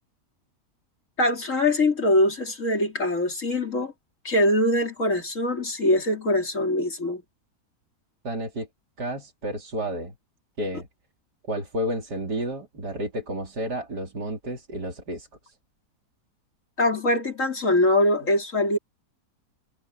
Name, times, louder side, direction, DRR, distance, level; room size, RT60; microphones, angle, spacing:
voice 1, 1.2-3.9 4.2-7.2 16.8-18.8, left 1 dB, 50° left, 3.9 m, -23 dB
voice 2, 8.2-8.7 9.0-10.1 10.6-10.9 11.5-15.5, equal, 80° right, 4.7 m, -31 dB
omnidirectional pair, 1.7 m